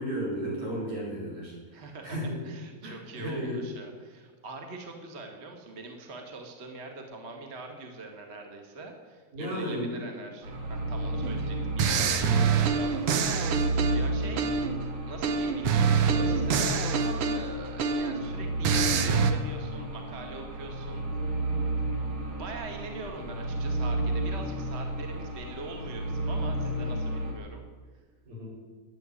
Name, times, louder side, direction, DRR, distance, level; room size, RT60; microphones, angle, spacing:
voice 1, 0.0-1.5 2.0-3.7 9.3-10.0 12.0-12.4 14.2-14.4 28.3-28.5, equal, 60° right, -5 dB, 6.9 m, -34 dB
voice 2, 1.7-2.2 2.4-14.7 15.0-21.4 22.4-27.6, right 3 dB, 30° right, 3 dB, 1.3 m, -43 dB
sound 1, 10.4-27.3, right 1 dB, 45° right, 2.2 m, -32 dB
sound 2, 11.2-11.4 11.8-14.8 15.2-18.3 18.6-19.3, right 6 dB, 80° right, 1.2 m, -26 dB
12.5 x 9.4 x 9.8 m, 1.4 s
omnidirectional pair, 3.9 m